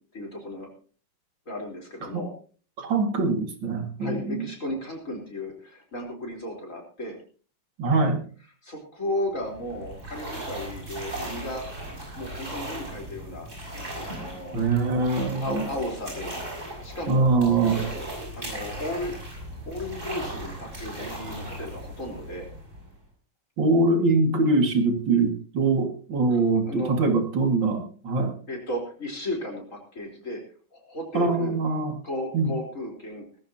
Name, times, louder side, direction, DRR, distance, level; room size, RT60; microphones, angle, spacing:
voice 1, 0.1-0.7 1.5-2.3 4.0-7.2 8.6-11.6 12.1-13.5 14.0-14.6 15.2-16.4 16.8-17.3 17.8-17.9 18.3-19.2 19.6-22.5 26.3-26.4 26.7-26.9 28.5-30.4 30.7-31.5 32.0-33.3, left 1 dB, 40° left, 1 dB, 4.2 m, -34 dB
voice 2, 2.8-4.5 7.8-8.2 14.5-15.7 17.1-17.8 23.6-28.3 31.1-31.9 32.3-32.5, right 3 dB, 75° right, 5 dB, 2.8 m, -23 dB
sound 1, 9.3-23.0, right 1 dB, 40° right, 6.9 m, -37 dB
19.0 x 14.5 x 2.8 m, 0.40 s
omnidirectional pair, 2.1 m